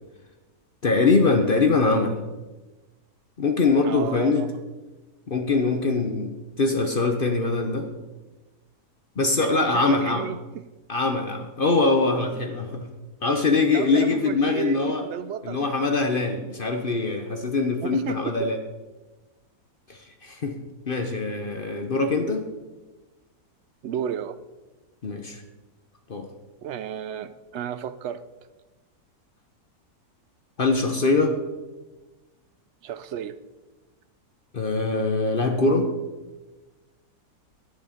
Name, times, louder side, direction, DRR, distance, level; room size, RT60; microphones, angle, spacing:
voice 1, 0.8-2.2 3.4-4.4 5.3-7.9 9.2-10.3 10.9-12.9 13.2-15.0 15.4-18.6 19.9-20.6 20.9-22.4 25.0-25.4 26.1-26.3 30.6-31.3 34.5-35.9, left 3 dB, 40° left, 0.9 m, -23 dB
voice 2, 3.8-4.5 9.4-10.7 13.7-15.6 17.8-18.5 23.8-24.4 26.6-28.2 32.8-33.4, right 9 dB, 70° right, 0.7 m, -33 dB
11.5 x 9.8 x 5.1 m
omnidirectional pair, 1.6 m